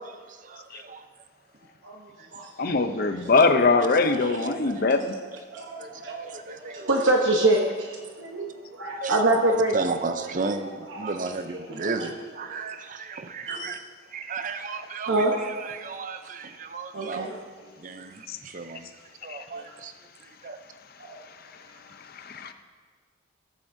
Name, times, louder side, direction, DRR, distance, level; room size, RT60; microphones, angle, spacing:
voice 1, 0.3-1.1 2.2-2.3 3.3-4.5 4.7-4.9 5.8-7.1 7.6-7.7 8.9-9.2 9.7-13.8 14.1-17.3 17.8-18.9 19.2-19.9 20.2-20.6, right 4 dB, 40° right, 9 dB, 0.6 m, -34 dB
voice 2, 1.8-2.5 2.8-3.2 4.4-4.9 5.5-9.8 10.9-11.1 11.8-12.1 12.5-12.6 13.5-13.7 15.1-15.3 16.9-17.4 19.5-19.6 21.0-21.2, right 2 dB, 70° right, 1 dB, 0.9 m, -26 dB
voice 3, 2.6-5.1 18.3-18.4 19.3-19.4 22.2-22.5, left 3 dB, 50° left, 8 dB, 0.6 m, -22 dB
18.5 x 7.2 x 2.7 m, 1.5 s
head